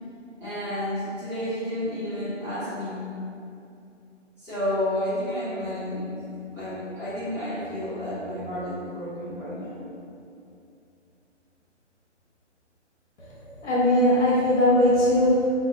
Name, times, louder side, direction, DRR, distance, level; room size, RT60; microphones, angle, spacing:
voice 1, 0.4-3.1 4.4-6.2 6.5-9.8, left 1 dB, 5° right, -21 dB, 0.8 m, -31 dB
voice 2, 13.2-15.5, left 1 dB, 65° left, -6 dB, 0.7 m, -20 dB
2.5 x 2.1 x 2.4 m, 2.6 s
figure-of-eight pair, 140°, 36 cm